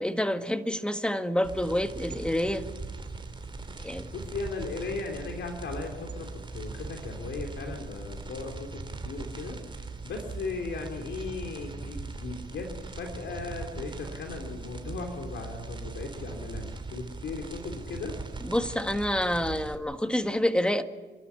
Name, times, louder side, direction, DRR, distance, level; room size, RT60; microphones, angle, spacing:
voice 1, 0.0-2.7 3.8-4.1 18.4-20.8, left 1 dB, 5° left, 8 dB, 1.7 m, -28 dB
sound 1, 1.4-19.7, right 3 dB, 25° right, 3.1 m, -40 dB
voice 2, 4.1-18.2, left 4 dB, 65° left, 2 dB, 3.4 m, -37 dB
28.5 x 13.0 x 9.7 m, 1.4 s
cardioid pair, 90°, 20 cm